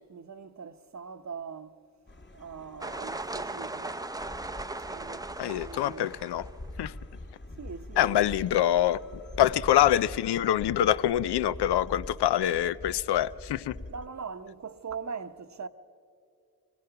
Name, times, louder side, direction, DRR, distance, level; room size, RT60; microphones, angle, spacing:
voice 1, 0.1-1.8 2.3-4.0 4.8-6.1 7.6-8.3 13.9-15.7, right 5 dB, 45° right, 0.9 m, -41 dB
sound 1, 2.1-14.1, left 1 dB, 25° left, 1.2 m, -45 dB
sound 2, 2.8-6.6, right 2 dB, 10° right, 0.5 m, -38 dB
voice 2, 5.4-6.5 6.8-6.9 8.0-9.0 9.4-13.8, left 12 dB, 85° left, 0.5 m, -25 dB
24.5 x 18.5 x 5.8 m
cardioid pair, 50°, 39 cm